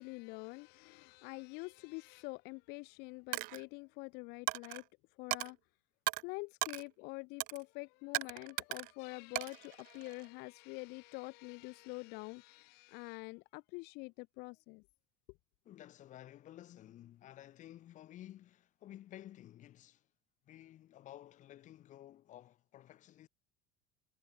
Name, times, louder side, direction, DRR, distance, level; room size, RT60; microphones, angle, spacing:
voice 1, 0.0-4.8 5.2-5.6 6.2-14.8, left 27 dB, 65° left, 1.9 m, -46 dB
Coin (dropping), 3.3-3.6 4.5-4.8 5.3-5.5 6.1-6.2 6.6-6.8 7.4-7.6 8.1-8.9 9.4-10.3, right 22 dB, 50° right, 0.4 m, -37 dB
voice 2, 15.6-20.0 20.5-23.3, left 13 dB, 45° left, 2.8 m, -54 dB
supercardioid pair, 125°, 18 cm